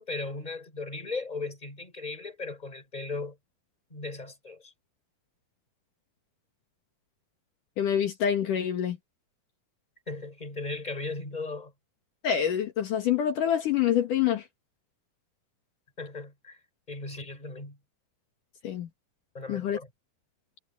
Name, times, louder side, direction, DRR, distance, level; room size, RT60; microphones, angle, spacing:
voice 1, 0.0-3.4 3.9-4.7 10.1-11.7 16.0-16.6 16.9-17.8 19.3-19.9, left 3 dB, 10° left, 5.0 m, -37 dB
voice 2, 7.8-9.0 12.2-14.4 18.6-18.9 19.5-19.8, left 9 dB, 65° left, 3.2 m, -26 dB
omnidirectional pair, 4.0 m